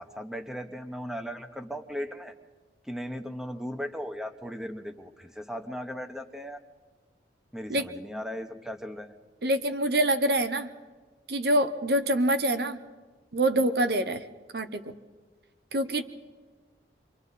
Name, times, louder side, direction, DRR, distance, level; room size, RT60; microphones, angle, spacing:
voice 1, 0.0-2.3 2.8-6.6 7.5-9.2, equal, 5° right, 7 dB, 1.0 m, -37 dB
voice 2, 9.4-10.7 11.3-12.8 13.3-14.2 14.5-14.9 15.7-16.0, right 1 dB, 65° right, 9 dB, 0.9 m, -25 dB
28.0 x 23.5 x 4.2 m, 1.4 s
head